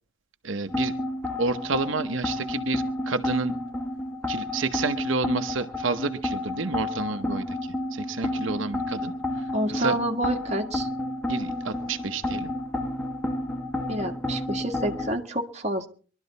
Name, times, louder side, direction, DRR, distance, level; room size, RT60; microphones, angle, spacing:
voice 1, 0.4-0.9 1.4-3.5 4.3-10.0 11.3-12.5, right 3 dB, 80° right, 7 dB, 0.9 m, -30 dB
sound 1, 0.7-15.1, left 1 dB, 10° left, 1.5 m, -31 dB
voice 2, 9.5-10.9 13.9-15.9, right 1 dB, 35° right, 3 dB, 1.6 m, -28 dB
22.5 x 12.0 x 4.0 m, 0.41 s
head